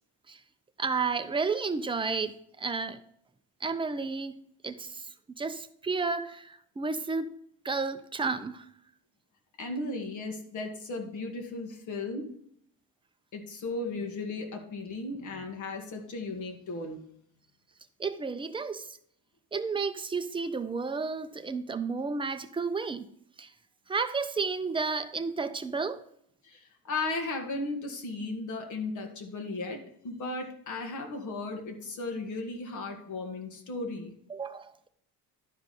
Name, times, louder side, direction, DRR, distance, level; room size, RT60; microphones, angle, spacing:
voice 1, 0.8-3.0 3.6-5.1 5.4-7.3 7.6-8.7 18.0-19.0 19.5-23.1 23.4-23.5 23.9-26.0 34.3-34.9, right 4 dB, 15° right, 0.4 m, -32 dB
voice 2, 9.6-12.3 13.3-17.0 26.4-34.1, left 2 dB, 55° left, 1.8 m, -36 dB
12.0 x 5.0 x 4.1 m
cardioid pair, 145°, 35 cm